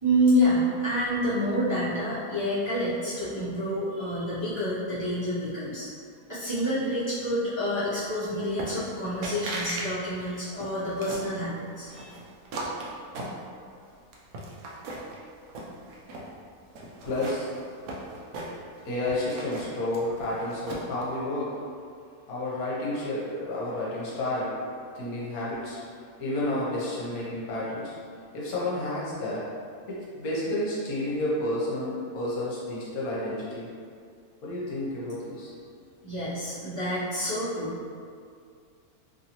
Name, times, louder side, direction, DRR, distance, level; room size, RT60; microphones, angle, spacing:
voice 1, 0.0-5.9 6.3-12.1 36.0-37.9, equal, 30° right, -14 dB, 0.5 m, -28 dB
sound 1, 8.6-9.0 9.2-9.9 10.2-11.3 11.9-13.8 14.1-15.2 15.5-16.3 16.8-18.8 19.1-21.0, right 2 dB, 70° right, 0.9 m, -37 dB
voice 2, 17.0-17.5 18.8-21.5 22.3-24.5 24.9-25.8 26.2-27.9 28.3-29.4 29.9-33.7 34.4-35.5, left 1 dB, 75° left, -7 dB, 1.3 m, -30 dB
3.0 x 2.6 x 2.8 m, 2.2 s
omnidirectional pair, 1.6 m